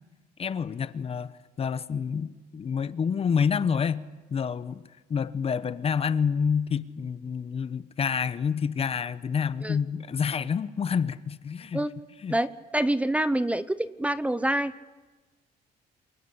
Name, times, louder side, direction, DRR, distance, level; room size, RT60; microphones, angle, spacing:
voice 1, 0.4-1.3 1.6-4.0 4.3-4.8 5.1-11.9 12.2-12.3, left 6 dB, 35° left, 1.0 m, -28 dB
voice 2, 12.3-14.7, right 1 dB, 10° right, 0.9 m, -26 dB
29.0 x 23.0 x 8.3 m
cardioid pair, 110°, 17 cm